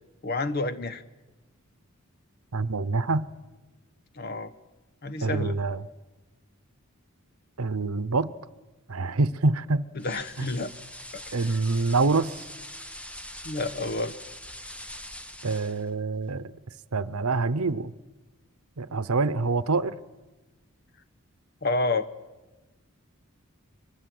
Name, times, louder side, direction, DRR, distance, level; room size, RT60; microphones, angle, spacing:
voice 1, 0.2-1.0 4.1-4.5 5.0-5.6 10.0-10.7 11.1-11.2 11.5-11.6 13.4-14.1 21.6-22.1, left 2 dB, 45° left, 1.0 m, -29 dB
voice 2, 2.5-3.3 5.2-5.8 7.6-8.3 8.9-9.8 10.4-10.5 11.3-12.5 15.4-16.5 16.9-17.9 18.8-19.9, right 3 dB, 85° right, 0.9 m, -26 dB
sound 1, 10.0-15.9, left 1 dB, 5° left, 0.7 m, -42 dB
24.0 x 22.5 x 7.8 m
head